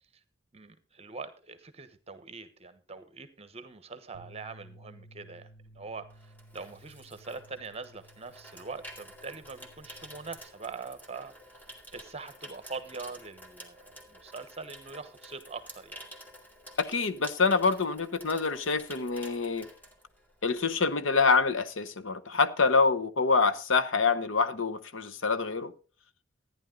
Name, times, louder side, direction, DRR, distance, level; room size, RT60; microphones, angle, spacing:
voice 1, 0.5-5.5 5.7-6.1 6.5-11.3 11.9-16.0, right 4 dB, 30° right, 1.1 m, -43 dB
Bass guitar, 4.1-10.4, right 1 dB, 35° left, 1.8 m, -56 dB
Water tap faucet / Sink (filling or washing), 5.6-20.6 20.9-21.2, equal, 10° left, 2.2 m, -50 dB
voice 2, 16.8-19.7 20.4-25.7, left 4 dB, 70° left, 0.9 m, -26 dB
14.0 x 10.0 x 3.8 m
head